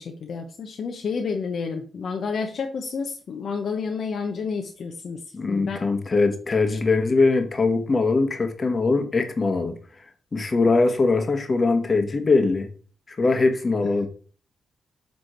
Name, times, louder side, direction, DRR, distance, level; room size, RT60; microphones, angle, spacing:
voice 1, 0.0-5.8 13.2-13.3, left 5 dB, 65° left, 3 dB, 0.9 m, -30 dB
voice 2, 5.3-9.8 10.3-12.7 13.1-14.1, left 3 dB, 40° left, 7 dB, 1.3 m, -21 dB
8.1 x 3.4 x 4.4 m, 0.41 s
cardioid pair, 80°, 0 cm